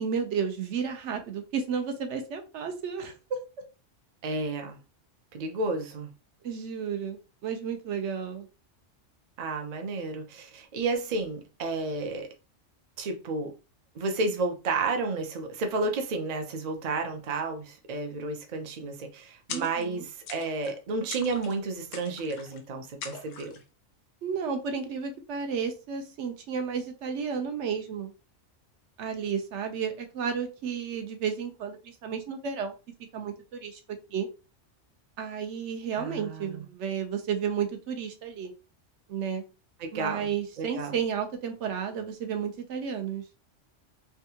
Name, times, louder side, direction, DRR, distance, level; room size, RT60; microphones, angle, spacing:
voice 1, 0.0-3.1 6.4-8.5 19.5-20.0 24.2-28.1 29.0-32.7 33.1-33.8 34.1-34.3 35.2-38.5 39.1-39.4 39.9-43.2, right 7 dB, 70° right, 0.9 m, -32 dB
voice 2, 4.2-4.8 5.3-6.1 9.4-12.3 13.0-13.5 13.9-23.6 35.9-36.6 39.8-40.3 40.6-40.9, right 3 dB, 50° right, 0.5 m, -31 dB
sound 1, 19.5-20.0 20.3-20.8 21.1-21.6 21.9-22.6 23.0-23.6, left 6 dB, 90° left, 1.0 m, -41 dB
3.5 x 2.3 x 2.7 m
omnidirectional pair, 1.3 m